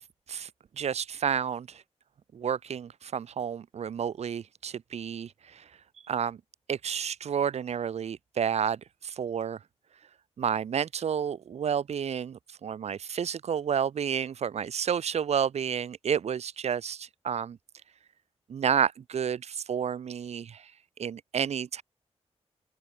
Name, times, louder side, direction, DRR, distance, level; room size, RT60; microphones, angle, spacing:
voice 1, 0.8-1.8 2.3-5.6 6.1-6.4 6.7-9.6 10.4-17.6 18.5-20.7 21.0-21.8, right 8 dB, 70° right, 1.0 m, -30 dB
open air
wide cardioid pair, 165°, 11 cm